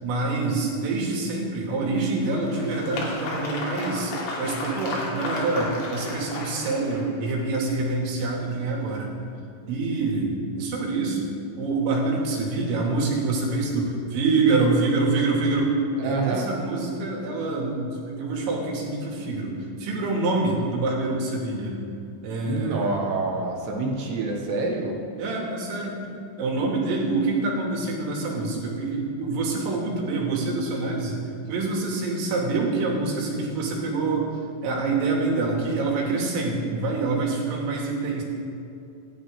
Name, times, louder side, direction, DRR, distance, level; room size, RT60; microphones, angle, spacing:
voice 1, 0.0-9.2 9.7-21.8 22.2-23.0 25.2-26.0 26.4-31.2 31.5-34.3 34.6-38.2, right 3 dB, 85° right, -2 dB, 5.3 m, -26 dB
Applause, 2.0-7.3, left 2 dB, 85° left, 5.2 m, -34 dB
voice 2, 16.0-16.5 22.5-25.0, right 3 dB, 65° right, 0 dB, 3.3 m, -27 dB
27.5 x 12.0 x 3.8 m, 2.6 s
omnidirectional pair, 5.7 m